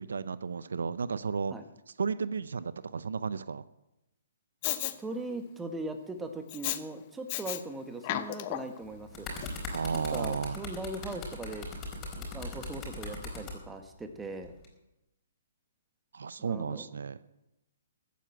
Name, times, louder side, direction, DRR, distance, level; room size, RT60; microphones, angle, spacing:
voice 1, 0.0-1.5 2.0-3.6 9.7-10.6 16.1-17.2, right 5 dB, 80° right, 16 dB, 0.6 m, -33 dB
Respiratory sounds, 4.6-4.9 6.5-6.8 7.3-7.6 8.0-8.8 9.4-9.5, left 14 dB, 40° left, 1.0 m, -33 dB
voice 2, 4.8-9.3 9.9-11.7 12.2-14.5 16.4-16.8, right 2 dB, 10° right, 6 dB, 1.6 m, -40 dB
sound 1, 8.8-13.5 14.4-14.6, left 3 dB, 20° left, 4.6 m, -40 dB
14.5 x 9.4 x 7.9 m, 0.92 s
hypercardioid pair, 140°, 0 cm